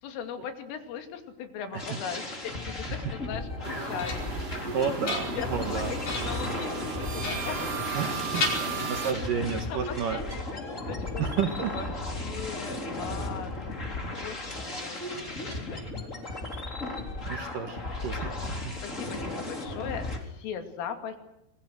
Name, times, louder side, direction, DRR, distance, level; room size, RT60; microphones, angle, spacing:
voice 1, 0.0-4.9 5.3-7.8 8.6-11.2 11.7-11.9 12.2-13.6 14.1-16.5 17.4-18.5 18.8-21.2, left 7 dB, 80° left, 6 dB, 5.1 m, -40 dB
sound 1, 1.8-20.2, left 2 dB, 15° left, 3.5 m, -35 dB
sound 2, 3.5-4.5 4.9-5.7 6.0-6.5 7.2-8.1 8.3-9.3, left 3 dB, 45° left, 6.2 m, -34 dB
sound 3, 3.6-9.1, right 5 dB, 40° right, 2.9 m, -35 dB
voice 2, 4.7-5.9 7.9-8.4 8.9-10.2 11.2-11.7 13.1-13.2 17.3-18.7, right 7 dB, 60° right, 6 dB, 2.3 m, -31 dB
28.0 x 22.5 x 6.4 m, 0.82 s
omnidirectional pair, 5.7 m